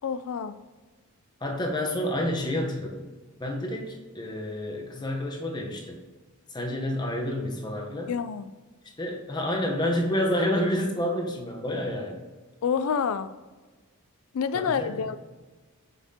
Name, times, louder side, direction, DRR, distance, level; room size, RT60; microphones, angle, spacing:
voice 1, 0.0-0.5 8.1-8.5 12.6-13.3 14.3-15.2, left 6 dB, 65° left, 13 dB, 0.4 m, -28 dB
voice 2, 1.4-3.1 3.4-6.0 6.5-8.1 9.0-12.2 14.5-15.1, left 1 dB, 20° left, 1 dB, 0.9 m, -29 dB
7.2 x 5.6 x 2.8 m, 1.3 s
head